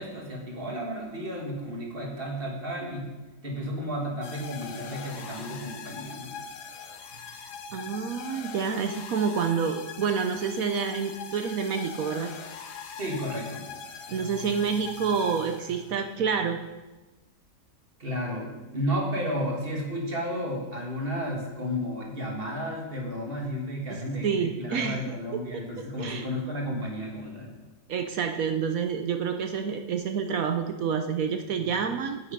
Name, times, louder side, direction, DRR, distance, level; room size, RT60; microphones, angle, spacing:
voice 1, 0.0-3.1 3.4-6.4 13.0-13.7 18.0-27.5, equal, 30° right, -1 dB, 2.3 m, -32 dB
sound 1, 4.2-16.0, left 6 dB, 70° left, 1.3 m, -42 dB
voice 2, 7.4-12.3 14.1-16.6 23.9-25.1 26.0-26.3 27.9-32.3, right 6 dB, 65° right, 6 dB, 1.0 m, -28 dB
9.3 x 8.7 x 5.4 m, 1.1 s
omnidirectional pair, 1.9 m